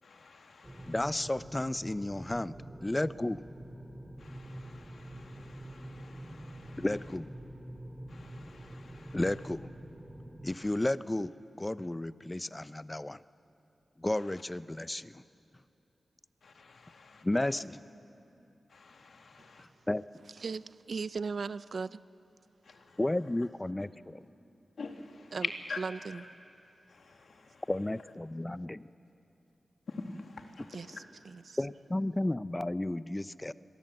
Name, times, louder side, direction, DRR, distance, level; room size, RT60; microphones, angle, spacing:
voice 1, 0.0-1.0 4.2-7.2 8.1-9.5 10.5-10.8 14.2-14.4 16.4-17.6 18.7-19.7 22.6-23.5 24.8-26.3 26.9-28.1 29.9-31.0, left 4 dB, 75° left, 2.2 m, -46 dB
sound 1, 0.6-10.6, right 1 dB, 20° right, 2.6 m, -46 dB
voice 2, 0.9-2.5 2.8-3.4 6.8-7.3 9.1-9.7 10.4-11.3 11.6-13.2 14.0-15.2 17.2-17.8 19.9-20.0 23.0-23.9 27.7-28.8 31.6-33.5, left 1 dB, 20° left, 0.6 m, -32 dB
voice 3, 20.4-22.0 25.3-25.4 30.7-30.9 31.5-31.6, right 5 dB, 65° right, 0.5 m, -37 dB
28.0 x 22.0 x 7.8 m
wide cardioid pair, 85°, 0 cm